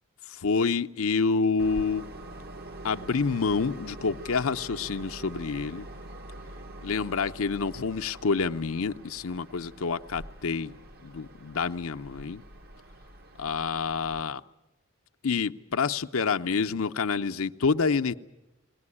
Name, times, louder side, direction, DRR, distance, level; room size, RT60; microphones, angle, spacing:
voice 1, 0.3-2.0 2.8-5.9 6.8-10.7 11.0-12.4 13.4-14.4 15.2-18.1, left 5 dB, 90° left, 0.7 m, -28 dB
Train, 1.6-14.2, right 1 dB, 50° right, 0.8 m, -45 dB
21.5 x 18.5 x 9.8 m
head